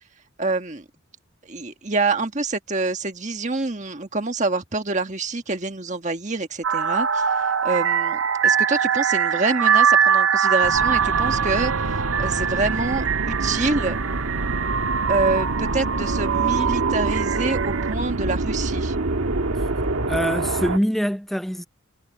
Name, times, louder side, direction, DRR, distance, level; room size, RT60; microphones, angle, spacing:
voice 1, 0.4-0.8 1.4-14.0 15.1-19.0, right 3 dB, 35° right, 1.5 m, -26 dB
sound 1, 6.6-17.9, right 7 dB, 70° right, 0.6 m, -22 dB
sound 2, 10.6-20.8, right 2 dB, 90° right, 1.5 m, -26 dB
voice 2, 20.1-21.6, equal, ahead, 0.5 m, -24 dB
head